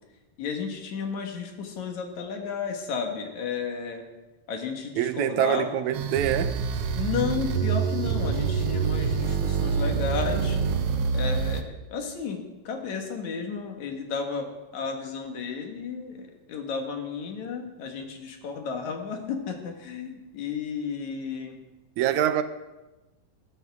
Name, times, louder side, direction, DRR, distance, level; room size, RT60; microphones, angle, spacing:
voice 1, 0.4-4.1 4.5-5.7 6.9-10.6 11.1-21.6, left 5 dB, 75° left, 3.0 m, -33 dB
voice 2, 5.0-6.6 22.0-22.4, right 11 dB, 90° right, 2.1 m, -25 dB
sound 1, 5.9-11.6, right 6 dB, 70° right, 1.6 m, -26 dB
21.5 x 12.5 x 3.6 m
omnidirectional pair, 3.3 m